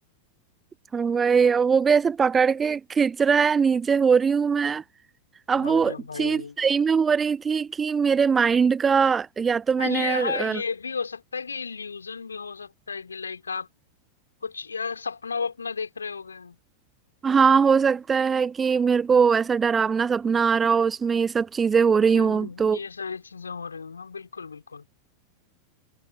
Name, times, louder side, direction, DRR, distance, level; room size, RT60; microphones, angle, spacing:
voice 1, 0.9-4.8 5.5-10.6 17.2-22.8, right 6 dB, 20° right, 0.5 m, -21 dB
voice 2, 5.6-6.5 9.8-13.7 14.4-16.6 22.0-24.8, left 5 dB, 75° left, 3.5 m, -33 dB
figure-of-eight pair, 90°, 0 cm